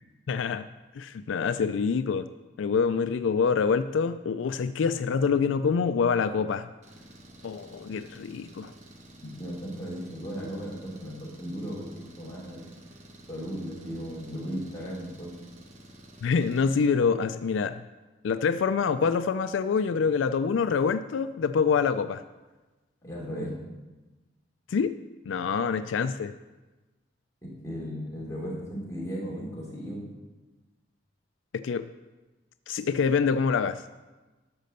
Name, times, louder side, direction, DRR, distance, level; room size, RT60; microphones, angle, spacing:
voice 1, 0.3-0.7 0.9-2.3 2.6-6.7 7.4-8.7 16.2-17.8 18.2-22.2 24.7-24.9 25.3-26.3 31.5-31.9 32.7-33.8, left 5 dB, 80° left, 12 dB, 0.4 m, -26 dB
Engine, 6.8-16.8, right 1 dB, 35° right, 1.2 m, -51 dB
voice 2, 9.2-11.9 12.2-12.7 13.3-15.3 23.0-23.5 27.4-30.0, equal, 15° left, -5 dB, 3.2 m, -36 dB
12.0 x 5.2 x 6.6 m, 1.2 s
head